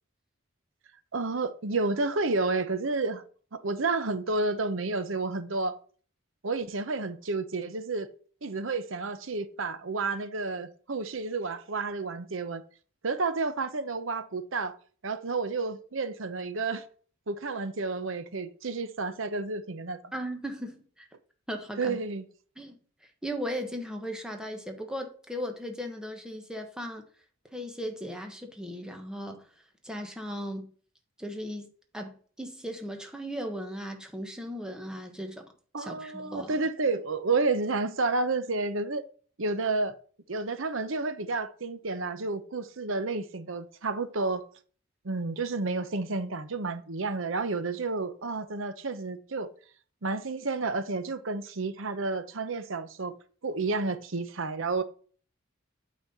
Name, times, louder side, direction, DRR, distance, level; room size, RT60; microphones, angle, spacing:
voice 1, 1.1-3.2 3.5-5.8 6.4-8.1 8.4-12.6 13.0-14.8 15.0-16.8 17.3-20.1 21.8-22.3 35.7-39.0 39.4-40.0 40.3-44.5 45.0-49.5 50.0-53.1 53.4-54.8, right 3 dB, 70° right, 0.8 m, -30 dB
voice 2, 20.1-21.1 21.5-22.0 22.6-22.8 23.2-27.0 27.5-29.5 29.8-30.7 31.2-35.5 35.8-36.6, equal, 5° right, 1.2 m, -37 dB
8.8 x 4.2 x 5.6 m
head